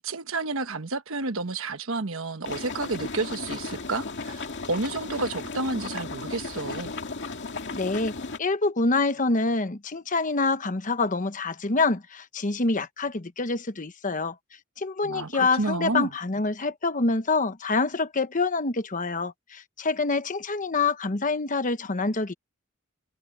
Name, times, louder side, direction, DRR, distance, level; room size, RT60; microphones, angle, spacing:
voice 1, 0.0-6.9 15.0-16.1, right 3 dB, 65° right, 1.2 m, -30 dB
sound 1, 2.4-8.4, left 3 dB, 55° left, 2.3 m, -35 dB
voice 2, 7.7-14.4 14.8-22.3, left 3 dB, 35° left, 1.1 m, -26 dB
head